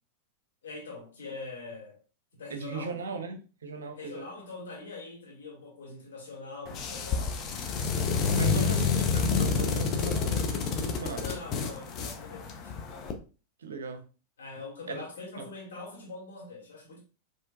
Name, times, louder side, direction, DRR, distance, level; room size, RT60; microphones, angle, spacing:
voice 1, 0.6-2.0 2.3-3.0 3.9-7.4 8.3-8.8 11.2-12.7 14.4-17.0, left 3 dB, 65° left, 1.8 m, -43 dB
voice 2, 2.5-4.2 8.3-11.4 13.6-14.1 14.9-15.0 15.4-15.5, right 4 dB, 65° right, 0.6 m, -38 dB
sound 1, 6.7-13.1, left 5 dB, 35° left, 0.6 m, -29 dB
4.4 x 3.0 x 2.3 m
figure-of-eight pair, 90°, 0 cm